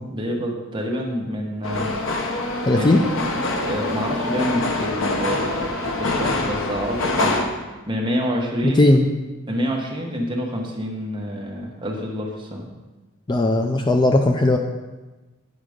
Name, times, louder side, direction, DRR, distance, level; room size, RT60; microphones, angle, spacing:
voice 1, 0.1-1.9 2.7-3.0 3.6-7.4 7.9-8.8 9.5-12.7, equal, 25° right, -1 dB, 1.3 m, -27 dB
sound 1, 1.6-7.4, left 2 dB, 65° left, 0.9 m, -25 dB
voice 2, 2.7-3.0 8.6-9.1 13.3-14.6, left 2 dB, 20° left, 5 dB, 0.4 m, -17 dB
9.2 x 5.0 x 5.0 m, 1.2 s
head